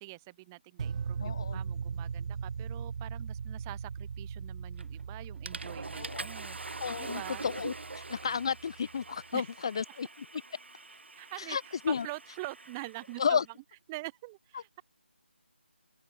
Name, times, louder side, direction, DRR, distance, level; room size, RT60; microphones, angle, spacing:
voice 1, 0.0-7.5 9.3-9.7 11.1-13.4 13.9-14.8, right 22 dB, 15° right, 1.7 m, -45 dB
sound 1, 0.8-8.9, right 6 dB, 35° right, 1.4 m, -39 dB
voice 2, 1.2-1.6 6.0-6.3 6.8-10.1 11.4-12.1 13.2-13.5 14.5-14.8, left 6 dB, 25° left, 0.3 m, -32 dB
Water / Toilet flush, 4.8-5.0 5.5-13.3, right 3 dB, 75° right, 1.9 m, -44 dB
figure-of-eight pair, 165°, 6 cm